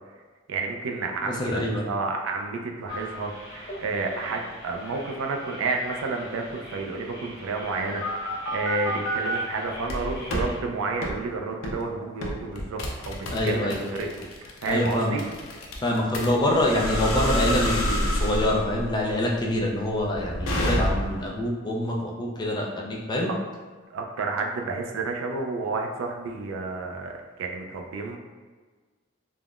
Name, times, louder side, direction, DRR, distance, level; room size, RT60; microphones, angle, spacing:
voice 1, 0.5-14.3 14.6-15.3 23.9-28.2, right 3 dB, 75° right, 2 dB, 0.4 m, -31 dB
voice 2, 1.2-1.9 13.3-13.9 14.7-15.2 15.8-23.3, left 1 dB, 20° left, -2 dB, 0.3 m, -25 dB
sound 1, 2.9-10.6, left 1 dB, 50° left, 1.0 m, -41 dB
sound 2, 7.6-9.4 9.9-10.5 11.0-11.2 11.6-11.8 12.2-21.3, equal, 85° left, 0.5 m, -28 dB
3.5 x 2.0 x 2.3 m, 1.4 s
head